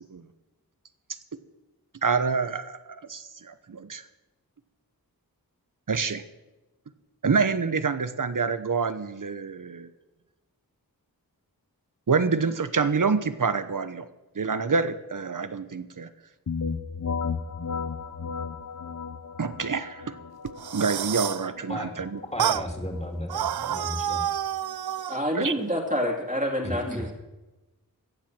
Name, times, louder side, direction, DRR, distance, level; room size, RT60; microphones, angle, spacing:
voice 1, 2.0-4.0 5.9-6.2 7.2-9.9 12.1-14.1 14.3-16.1 19.4-20.1 20.7-22.2 25.3-25.5, right 5 dB, 55° right, 12 dB, 1.0 m, -27 dB
sound 1, 16.5-26.0, left 5 dB, 50° left, 0.8 m, -36 dB
sound 2, 20.5-21.5 22.4-22.7 23.3-25.2, right 10 dB, 80° right, 0.5 m, -29 dB
voice 2, 22.3-24.2 26.6-27.1, left 1 dB, 20° left, 2 dB, 2.9 m, -34 dB
voice 3, 25.1-27.1, equal, 20° right, 0 dB, 2.7 m, -27 dB
16.0 x 7.5 x 7.5 m, 1.1 s
wide cardioid pair, 45°, 37 cm